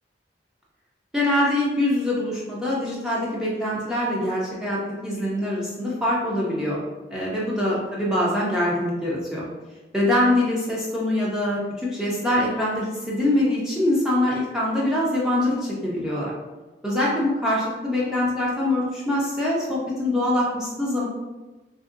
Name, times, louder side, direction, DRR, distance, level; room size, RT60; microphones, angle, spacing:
voice 1, 1.1-6.8 7.1-9.4 9.9-16.3 16.8-21.1, left 1 dB, 5° right, -7 dB, 0.4 m, -24 dB
2.8 x 2.6 x 2.5 m, 1.2 s
head